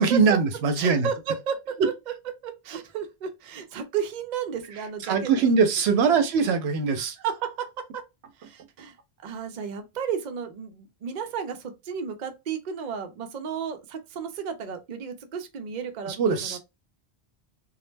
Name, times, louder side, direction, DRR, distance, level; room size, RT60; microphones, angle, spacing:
voice 1, 0.0-1.1 5.1-7.2 16.1-16.6, right 5 dB, 85° right, 0.8 m, -22 dB
voice 2, 0.8-1.9 2.4-5.5 6.1-6.2 7.2-8.0 8.4-8.9 9.2-16.6, right 7 dB, 55° right, 0.6 m, -33 dB
2.2 x 2.1 x 3.2 m
omnidirectional pair, 1.1 m